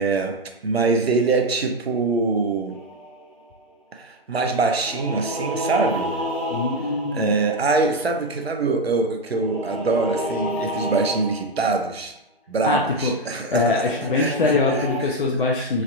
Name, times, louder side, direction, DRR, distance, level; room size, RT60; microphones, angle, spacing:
voice 1, 0.0-2.8 3.9-6.2 7.1-12.1 12.5-15.2 15.6-15.8, right 3 dB, 85° right, 4 dB, 0.6 m, -24 dB
sound 1, 2.7-3.5 4.7-8.3 9.3-11.7 13.6-15.0, equal, 15° left, 1.2 m, -30 dB
voice 2, 6.5-7.3 12.6-15.8, left 3 dB, 60° left, 0 dB, 0.4 m, -23 dB
3.2 x 2.6 x 2.4 m, 0.83 s
figure-of-eight pair, 155°, 30 cm